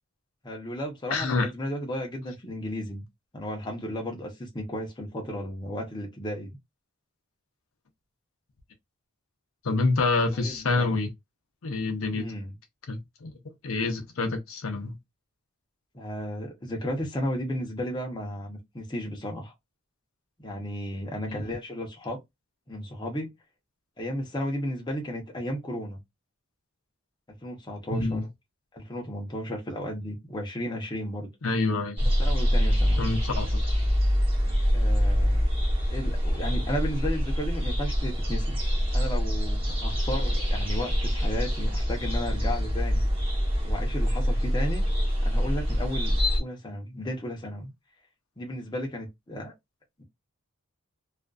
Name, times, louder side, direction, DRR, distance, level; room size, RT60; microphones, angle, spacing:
voice 1, 0.4-3.0 3.3-6.5 10.3-11.0 12.1-12.5 15.9-19.5 20.4-22.2 22.7-23.3 24.0-26.0 27.4-28.2 28.7-31.3 32.2-33.1 34.7-35.4 35.9-38.6 38.9-43.1 43.6-44.8 45.2-47.7 48.4-49.5, equal, 20° left, 0.7 m, -34 dB
voice 2, 1.1-1.5 9.6-11.1 11.6-12.3 12.9-13.4 13.6-15.0 21.3-21.4 27.9-28.2 31.4-32.1 33.0-33.5, left 3 dB, 75° left, 0.6 m, -27 dB
sound 1, 32.0-46.4, equal, 25° right, 0.9 m, -25 dB
2.4 x 2.4 x 2.3 m
head